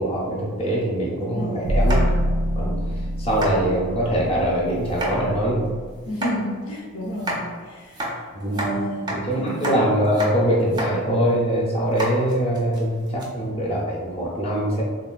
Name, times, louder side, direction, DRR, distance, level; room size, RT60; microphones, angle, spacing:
voice 1, 0.0-2.1 2.6-2.8 3.2-5.7 8.3-8.6 9.1-14.8, right 1 dB, 25° left, -4 dB, 0.6 m, -23 dB
voice 2, 1.2-1.7 6.1-8.0 8.5-9.0 9.4-9.6, equal, 80° left, -2 dB, 0.6 m, -30 dB
sound 1, 1.6-5.9, equal, 75° right, 0.5 m, -25 dB
sound 2, 1.8-2.4 2.8-2.9 3.3-3.5 4.8-5.1 6.0-6.3 7.1-7.4 7.9-8.7 9.1-9.2 9.5-9.8 10.0-10.3 10.6-10.9 11.3-11.4 11.9-13.3, right 1 dB, 20° right, 0.4 m, -30 dB
3.7 x 2.2 x 2.4 m, 1.5 s
head